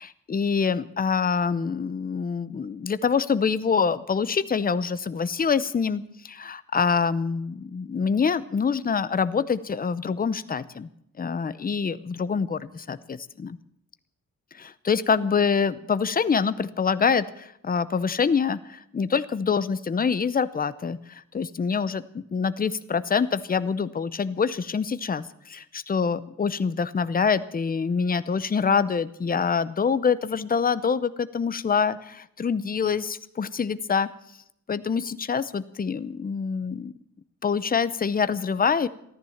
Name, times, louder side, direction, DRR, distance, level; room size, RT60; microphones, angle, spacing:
voice 1, 0.0-10.9 11.2-13.6 14.6-34.1 34.7-36.9 37.4-38.9, left 6 dB, 30° left, 14 dB, 0.7 m, -25 dB
15.0 x 13.5 x 7.2 m, 0.75 s
wide cardioid pair, 155°, 30 cm